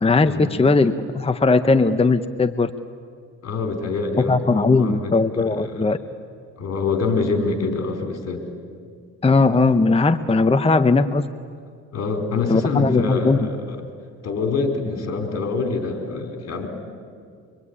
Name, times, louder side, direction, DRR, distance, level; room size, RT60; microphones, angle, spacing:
voice 1, 0.0-2.7 4.3-6.0 9.2-11.2 12.5-13.5, left 3 dB, 20° left, 9 dB, 0.9 m, -18 dB
voice 2, 3.4-5.9 6.6-8.4 11.9-13.8 14.2-16.7, left 4 dB, 55° left, 4 dB, 4.8 m, -25 dB
25.0 x 24.5 x 9.8 m, 2.2 s
cardioid pair, 90°, 30 cm